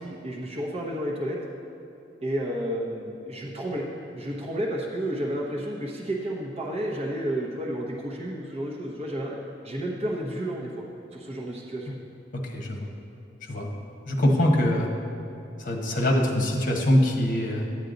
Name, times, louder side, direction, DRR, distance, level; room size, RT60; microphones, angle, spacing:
voice 1, 0.0-1.4 2.2-3.8 4.1-9.4 9.6-10.7 11.1-11.9, right 1 dB, 35° right, -3 dB, 1.0 m, -31 dB
voice 2, 12.3-12.9 13.5-13.7 14.1-14.9 15.6-17.8, left 1 dB, 50° left, 1 dB, 1.3 m, -23 dB
10.5 x 8.1 x 3.9 m, 2.8 s
head